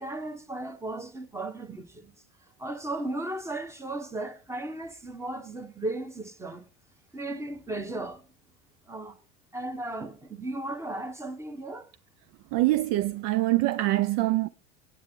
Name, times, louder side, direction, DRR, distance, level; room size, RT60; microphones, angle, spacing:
voice 1, 0.0-2.1 2.6-6.7 7.1-8.3 8.9-9.2 9.5-11.9, right 2 dB, 10° right, 1.3 m, -35 dB
voice 2, 12.5-14.5, right 17 dB, 50° right, 0.5 m, -24 dB
8.6 x 8.1 x 3.7 m
hypercardioid pair, 90°, 34 cm